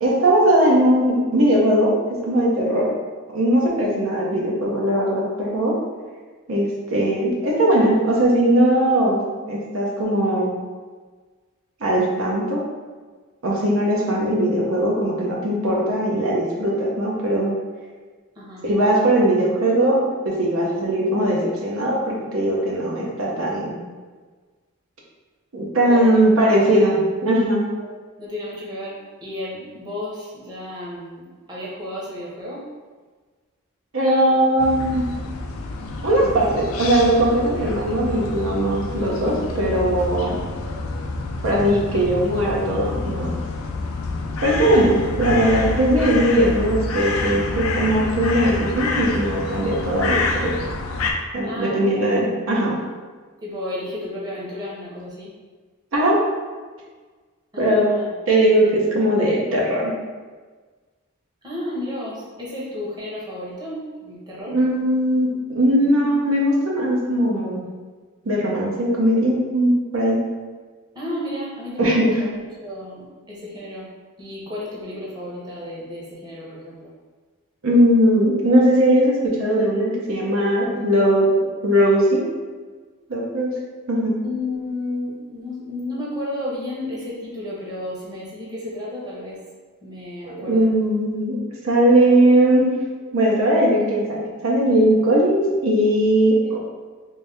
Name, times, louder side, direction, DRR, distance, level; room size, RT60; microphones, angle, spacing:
voice 1, 0.0-1.9 2.2-2.9 3.3-5.7 6.5-10.5 11.8-12.6 13.4-17.5 18.6-23.7 25.5-27.6 33.9-35.0 36.0-40.4 41.4-43.3 44.4-50.6 51.3-52.8 55.9-56.2 57.6-57.9 58.3-59.9 64.4-67.6 68.2-70.2 71.8-72.2 77.6-81.3 81.6-82.3 83.1-83.5 83.9-84.1 90.3-91.4 91.6-92.7 93.1-96.6, right 1 dB, 75° right, -3 dB, 0.7 m, -19 dB
voice 2, 25.9-26.2 27.8-27.9 28.2-32.7 44.7-45.1 51.4-52.4 53.4-55.3 57.5-58.1 58.4-58.7 61.4-64.6 70.9-73.9 74.2-76.9 84.2-89.4 89.8-90.7 96.4-96.6, left 1 dB, 20° right, -6 dB, 0.8 m, -32 dB
sound 1, 34.6-51.1, left 3 dB, 80° left, 0.4 m, -28 dB
3.2 x 2.6 x 3.3 m, 1.4 s
head